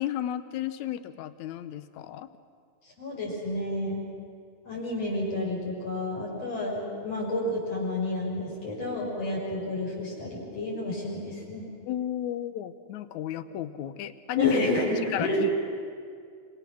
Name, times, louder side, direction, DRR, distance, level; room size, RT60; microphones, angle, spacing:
voice 1, 0.0-2.3 11.9-14.6 15.1-15.5, left 12 dB, 75° left, 12 dB, 2.2 m, -33 dB
voice 2, 3.0-4.0 4.7-11.7 14.4-15.4, left 1 dB, 50° left, -3 dB, 7.2 m, -30 dB
27.5 x 26.5 x 6.4 m, 2.2 s
omnidirectional pair, 3.5 m